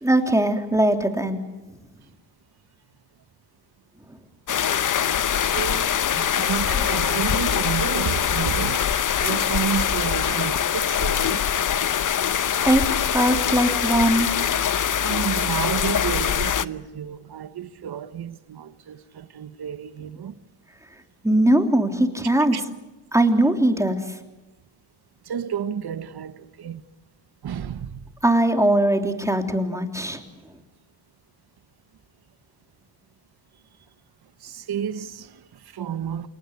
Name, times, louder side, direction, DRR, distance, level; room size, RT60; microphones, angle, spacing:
voice 1, 0.0-1.4 12.7-14.3 21.2-22.6 23.1-24.0 28.2-30.2, right 1 dB, 5° right, 3.3 m, -20 dB
Rain Moderate B, 4.5-16.7, left 9 dB, 45° left, 0.9 m, -23 dB
voice 2, 5.3-11.4 15.0-20.4 22.5-22.6 25.3-26.8 27.4-28.0 34.4-36.3, right 8 dB, 55° right, 1.4 m, -31 dB
29.0 x 18.5 x 8.3 m
cardioid pair, 95°, 45 cm